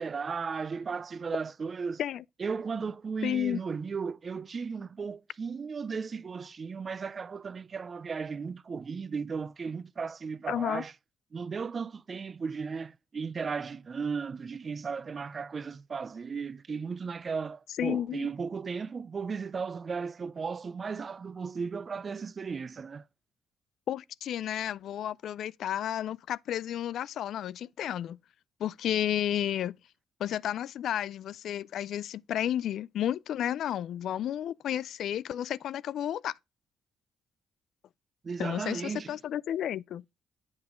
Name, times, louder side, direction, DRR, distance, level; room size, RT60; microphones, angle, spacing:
voice 1, 0.0-2.0 2.4-10.9 11.3-23.1 38.2-39.2, right 5 dB, 40° right, 0.4 m, -35 dB
voice 2, 3.2-3.6 10.5-10.8 17.8-18.3 23.9-28.2 28.6-29.8 30.2-36.3 38.4-40.0, left 11 dB, 70° left, 0.3 m, -32 dB
8.0 x 5.5 x 3.6 m
cardioid pair, 90°, 0 cm